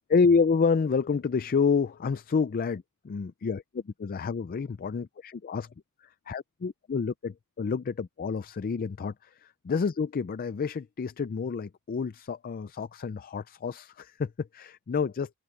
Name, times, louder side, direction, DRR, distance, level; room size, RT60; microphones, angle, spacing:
voice 1, 0.1-5.7 6.0-15.3, left 5 dB, 40° left, 0.4 m, -29 dB
open air
head